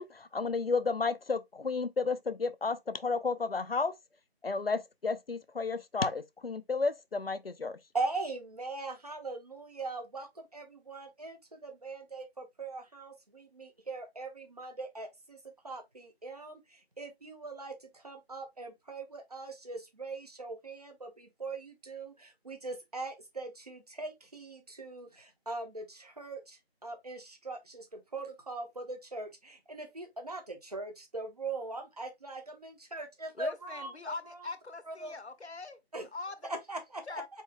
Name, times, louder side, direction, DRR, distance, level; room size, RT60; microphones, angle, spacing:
voice 1, 0.0-4.0 4.4-7.9, left 4 dB, 65° left, 0.7 m, -32 dB
voice 2, 7.9-15.4 15.6-34.5 34.9-35.1 35.9-36.1 36.5-37.2, right 3 dB, 35° right, 1.3 m, -41 dB
voice 3, 33.4-35.8 36.1-36.5 37.1-37.3, left 3 dB, 85° left, 1.1 m, -41 dB
4.6 x 4.4 x 2.5 m
figure-of-eight pair, 170°, 32 cm